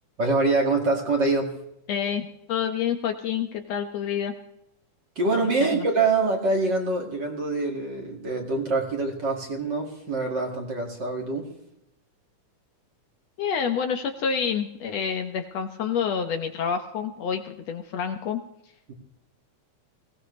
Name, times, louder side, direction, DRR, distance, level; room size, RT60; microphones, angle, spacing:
voice 1, 0.2-1.5 5.2-11.4 18.9-19.0, right 3 dB, 40° right, 2 dB, 2.5 m, -25 dB
voice 2, 1.9-4.4 5.4-5.9 13.4-18.4, left 7 dB, 65° left, 6 dB, 2.0 m, -28 dB
20.5 x 17.5 x 3.2 m, 0.81 s
omnidirectional pair, 3.5 m